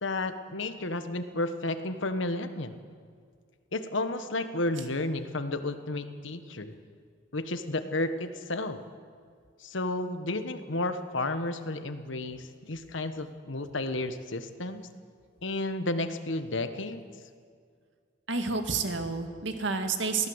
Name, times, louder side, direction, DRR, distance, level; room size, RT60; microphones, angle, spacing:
voice 1, 0.0-2.8 3.7-6.7 7.3-8.8 9.6-14.9 15.4-17.0, left 2 dB, 70° left, 9 dB, 1.4 m, -32 dB
voice 2, 18.3-20.3, right 4 dB, 65° right, 6 dB, 2.0 m, -30 dB
23.0 x 17.0 x 8.1 m, 2.1 s
head